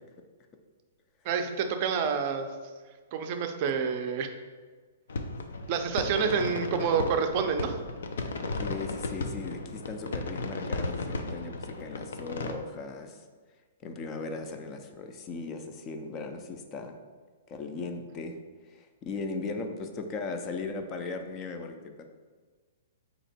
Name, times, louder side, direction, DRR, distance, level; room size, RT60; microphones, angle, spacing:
voice 1, 1.2-2.5 3.1-4.3 5.7-7.7, right 6 dB, 35° right, 6 dB, 0.4 m, -28 dB
sound 1, 5.1-12.6, left 3 dB, 80° left, 0.5 m, -35 dB
voice 2, 8.6-13.2 13.8-17.0 17.5-18.4 18.6-22.0, left 3 dB, 25° left, 6 dB, 0.4 m, -38 dB
4.3 x 2.9 x 4.2 m, 1.5 s
hypercardioid pair, 160°, 0 cm